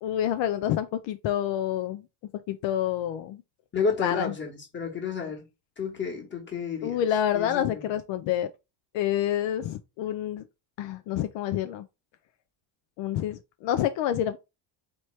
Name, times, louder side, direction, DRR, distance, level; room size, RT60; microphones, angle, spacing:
voice 1, 0.0-2.0 2.5-3.4 4.0-4.3 6.8-8.5 8.9-10.4 10.8-11.8 13.0-14.4, left 11 dB, 75° left, 0.6 m, -28 dB
voice 2, 3.7-5.5 5.8-7.0 7.3-7.9, left 5 dB, 25° left, 1.4 m, -31 dB
4.4 x 3.2 x 3.1 m
cardioid pair, 160°, 45 cm